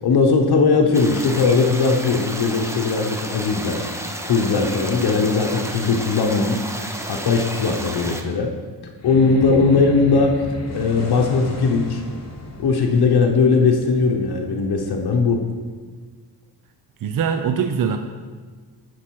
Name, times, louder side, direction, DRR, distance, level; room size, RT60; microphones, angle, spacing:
voice 1, 0.0-3.9 4.2-6.6 7.1-8.5 9.0-10.4 10.7-12.0 12.6-15.4, left 4 dB, 70° left, 3 dB, 0.9 m, -19 dB
sound 1, 0.9-8.2, right 1 dB, 5° right, 0.5 m, -32 dB
sound 2, 8.9-15.6, left 2 dB, 40° left, 1.1 m, -35 dB
voice 2, 9.5-9.9 17.0-18.0, right 7 dB, 60° right, 7 dB, 0.5 m, -23 dB
9.9 x 4.6 x 4.6 m, 1.5 s
wide cardioid pair, 160°, 39 cm